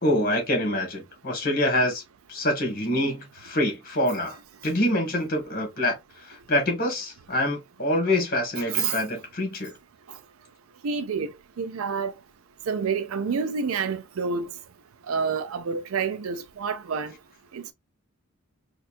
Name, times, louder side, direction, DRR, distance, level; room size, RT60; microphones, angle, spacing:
voice 1, 0.0-2.0 2.3-4.4 4.6-6.0 6.2-9.7, left 1 dB, 45° left, 1.7 m, -25 dB
voice 2, 10.8-11.3 11.6-12.1 12.7-14.5 15.1-17.1 17.5-17.7, right 5 dB, 75° right, 0.4 m, -28 dB
4.2 x 2.4 x 2.5 m
head